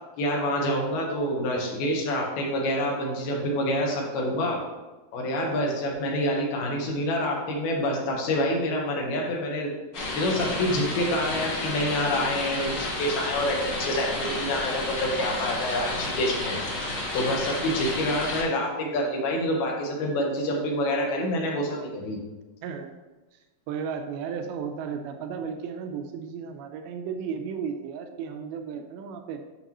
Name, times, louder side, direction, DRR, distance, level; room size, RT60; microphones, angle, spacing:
voice 1, 0.2-4.6 5.1-9.7 10.1-16.6 17.1-22.2, left 1 dB, 90° left, -1 dB, 3.3 m, -27 dB
sound 1, 9.9-18.4, left 2 dB, 70° left, 1.0 m, -31 dB
voice 2, 23.7-29.4, right 6 dB, 85° right, 6 dB, 2.5 m, -34 dB
9.0 x 6.0 x 3.0 m, 1.1 s
omnidirectional pair, 4.3 m